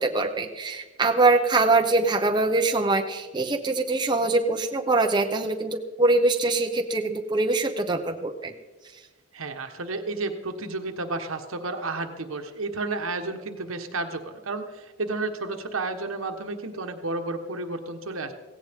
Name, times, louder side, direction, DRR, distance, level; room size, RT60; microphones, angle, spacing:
voice 1, 0.0-8.5, right 3 dB, 20° right, 4 dB, 0.8 m, -23 dB
voice 2, 9.3-18.3, right 3 dB, 85° right, 6 dB, 1.3 m, -32 dB
16.5 x 16.5 x 3.6 m, 1.2 s
head